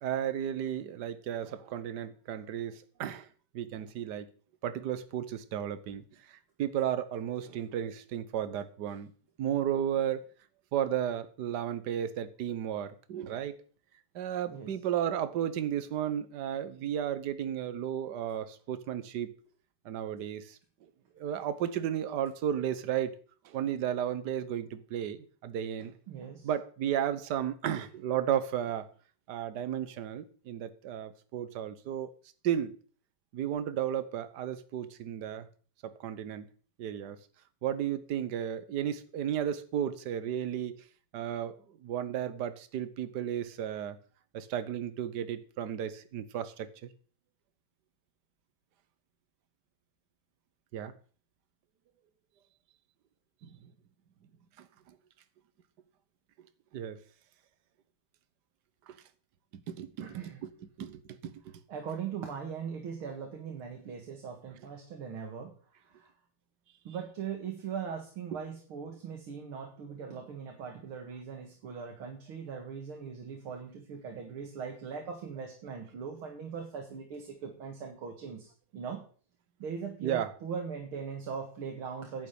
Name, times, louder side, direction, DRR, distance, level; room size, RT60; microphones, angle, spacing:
voice 1, 0.0-3.3 3.5-4.3 4.6-6.0 6.6-9.1 9.4-10.3 10.7-13.6 14.1-19.3 19.8-20.6 21.2-23.2 23.4-25.9 26.4-28.9 29.3-32.1 32.4-32.7 33.3-35.5 35.8-36.5 36.8-37.2 37.6-40.8 41.1-44.0 44.3-46.9 50.7-50.9 53.6-53.7 54.6-54.9 56.7-57.0 58.9-59.0 59.7-60.5 60.8-61.3 80.0-80.3, right 10 dB, 55° right, 1.5 m, -33 dB
voice 2, 26.1-26.5 60.0-60.4 61.7-65.5 65.9-66.1 66.8-79.0 79.6-82.3, right 6 dB, 75° right, 2.6 m, -40 dB
10.5 x 6.3 x 8.9 m
omnidirectional pair, 2.3 m